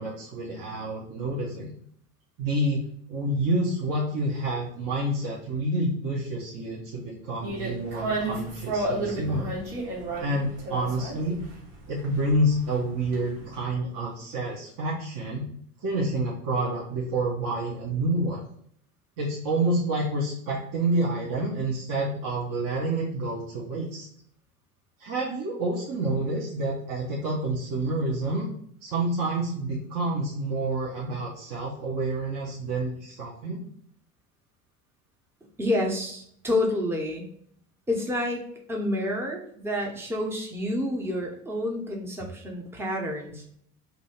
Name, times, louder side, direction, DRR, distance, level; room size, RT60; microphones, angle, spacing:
voice 1, 0.0-1.7 2.4-2.8 3.1-9.6 10.2-11.4 11.9-15.5 15.8-18.4 19.2-24.0 25.0-28.5 28.8-33.6, right 1 dB, 45° right, -4 dB, 1.0 m, -28 dB
sound 1, 7.4-13.6, right 2 dB, 70° right, 1.6 m, -33 dB
voice 2, 35.6-37.3 37.9-38.4 38.7-43.4, left 1 dB, 5° right, 1 dB, 0.7 m, -29 dB
2.8 x 2.7 x 4.3 m, 0.65 s
hypercardioid pair, 80°, 46 cm